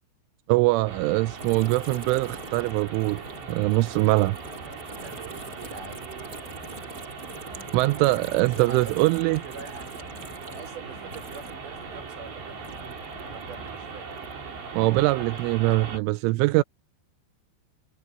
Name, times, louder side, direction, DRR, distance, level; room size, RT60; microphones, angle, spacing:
voice 1, 0.5-3.2 3.5-4.4 7.7-9.4 14.7-16.6, right 21 dB, 85° right, 3.1 m, -22 dB
sound 1, 0.6-14.1, left 2 dB, 80° left, 8.4 m, -52 dB
sound 2, 0.8-16.0, right 5 dB, 65° right, 7.9 m, -40 dB
sound 3, 1.4-11.7 12.0-14.5 15.0-15.9, right 2 dB, 20° right, 5.7 m, -45 dB
voice 2, 3.8-6.4 7.5-7.6 8.3-10.1 10.5-14.2, right 5 dB, 45° right, 5.7 m, -45 dB
omnidirectional pair, 5.6 m